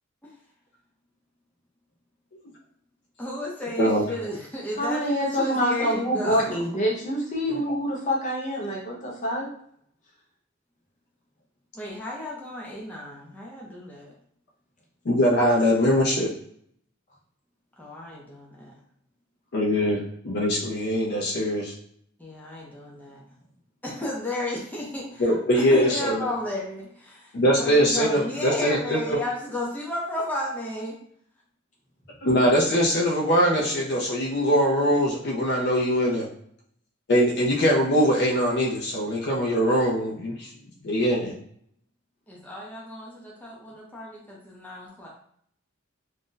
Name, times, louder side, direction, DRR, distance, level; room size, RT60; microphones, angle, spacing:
voice 1, 3.2-6.6 11.7-14.1 17.8-18.7 22.2-23.2 23.8-31.0 42.3-45.1, left 1 dB, 10° left, -4 dB, 0.5 m, -33 dB
voice 2, 4.8-9.5, equal, 40° left, -3 dB, 0.9 m, -26 dB
voice 3, 15.1-16.3 19.5-21.7 25.2-26.3 27.3-29.2 32.2-36.3 37.1-40.5 40.8-41.3, equal, 55° left, -2 dB, 0.5 m, -22 dB
2.5 x 2.1 x 3.7 m, 0.67 s
head